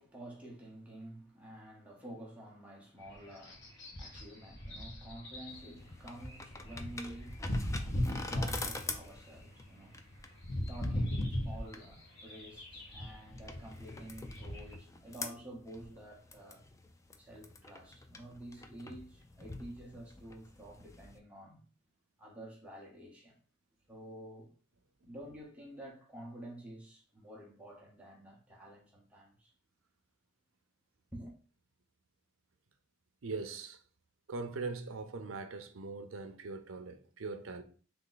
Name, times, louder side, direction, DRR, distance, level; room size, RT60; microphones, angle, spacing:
voice 1, 0.0-10.0 10.7-16.6 17.2-21.7 22.2-23.4 23.9-24.5 25.0-29.5 31.1-31.3, right 1 dB, 5° right, 0.9 m, -50 dB
sound 1, 3.0-14.7, left 1 dB, 60° left, 1.3 m, -39 dB
sound 2, 5.5-21.2, left 3 dB, 15° left, 0.3 m, -46 dB
voice 2, 33.2-33.8 34.3-37.6, right 3 dB, 75° right, 0.6 m, -41 dB
3.5 x 2.8 x 3.9 m
head